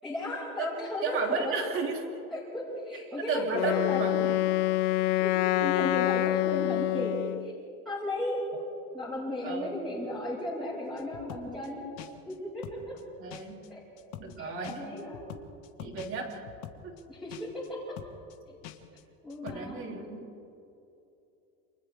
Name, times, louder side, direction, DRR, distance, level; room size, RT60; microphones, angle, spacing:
voice 1, 0.0-1.5 2.3-4.0 5.1-7.5 7.8-8.4 8.9-11.8 12.2-12.9 13.7-13.8 14.4-15.2 17.1-17.4 17.7-17.8 18.5-18.6 19.2-19.8, left 1 dB, ahead, -10 dB, 6.3 m, -35 dB
voice 2, 1.0-2.0 3.3-4.4 9.4-9.8 13.2-13.7 14.2-14.8 15.8-16.4 16.8-17.0 19.4-20.3, right 4 dB, 35° right, 1 dB, 3.2 m, -33 dB
Wind instrument woodwind instrument, 3.5-7.5, left 16 dB, 70° left, 0.7 m, -27 dB
sound 1, 11.0-11.7 12.0-12.4 12.6-13.0 13.3-13.7 14.0-14.4 14.6-17.0 17.3-17.7 18.0-18.4 18.6-19.0 19.3-19.6, left 12 dB, 55° left, 1.6 m, -45 dB
29.0 x 28.5 x 3.6 m, 2.7 s
cardioid pair, 175°, 36 cm